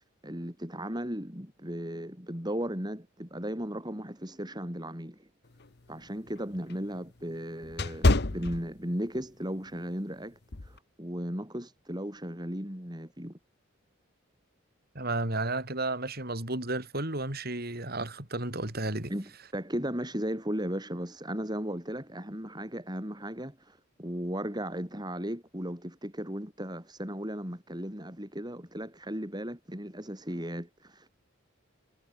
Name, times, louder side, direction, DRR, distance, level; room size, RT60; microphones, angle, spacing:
voice 1, 0.2-5.3 5.9-13.4 19.1-31.1, equal, 20° right, 7.9 m, -36 dB
sound 1, 5.5-9.2 9.7-9.9 10.5-10.8, left 2 dB, 55° left, 1.1 m, -28 dB
voice 2, 14.9-19.1, right 2 dB, 50° right, 4.8 m, -32 dB
head